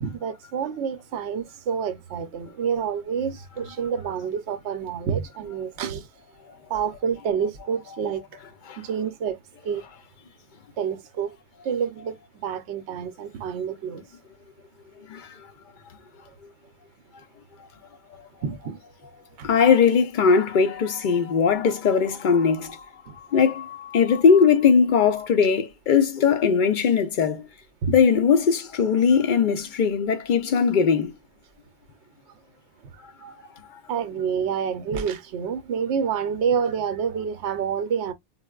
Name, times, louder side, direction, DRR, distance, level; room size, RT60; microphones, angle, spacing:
voice 1, 0.0-6.1 6.7-8.2 8.8-9.4 9.6-9.8 10.8-11.4 11.6-14.0 18.4-18.8 19.4-19.5 23.1-23.2 27.8-27.9 32.9-33.3 33.9-38.1, right 7 dB, 70° right, 0.9 m, -28 dB
voice 2, 19.4-22.8 23.3-27.5 27.9-31.1, left 6 dB, 55° left, 0.6 m, -20 dB
4.6 x 2.1 x 2.2 m
omnidirectional pair, 1.2 m